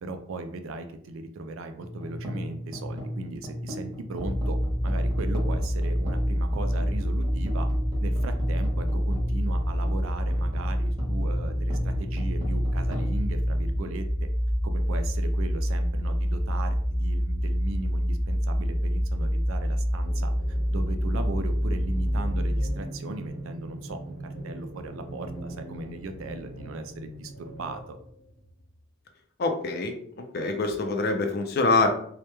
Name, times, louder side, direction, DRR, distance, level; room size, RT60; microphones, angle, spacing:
voice 1, 0.0-4.6 4.8-7.7 8.0-14.0 14.6-20.3 20.7-24.1 24.4-28.0, right 3 dB, 70° right, 7 dB, 0.3 m, -37 dB
sound 1, 1.8-14.2, left 1 dB, 20° right, 0.6 m, -36 dB
sound 2, 4.2-22.7, equal, 10° left, 0.8 m, -27 dB
sound 3, 20.0-28.8, right 1 dB, 75° left, 0.8 m, -41 dB
voice 2, 29.4-31.9, left 3 dB, 45° left, 5 dB, 0.4 m, -25 dB
2.2 x 2.1 x 2.9 m, 0.63 s
head